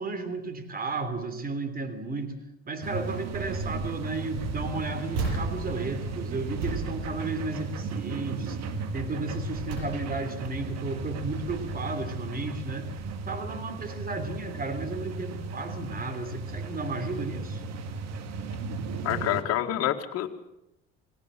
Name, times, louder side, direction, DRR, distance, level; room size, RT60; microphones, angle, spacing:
voice 1, 0.0-2.4 2.6-8.6 8.9-12.9 13.3-17.6, right 3 dB, 30° right, 11 dB, 3.3 m, -33 dB
sound 1, 2.8-19.4, right 3 dB, 60° right, 2.2 m, -36 dB
sound 2, 3.3-3.9 4.3-8.0 8.4-8.7 9.2-10.4 10.9-11.9 12.6-12.7 13.0-13.1, right 4 dB, 80° right, 7.4 m, -37 dB
voice 2, 19.0-20.3, left 12 dB, 55° left, 3 dB, 2.2 m, -27 dB
19.5 x 18.0 x 7.7 m, 0.86 s
supercardioid pair, 85°, 29 cm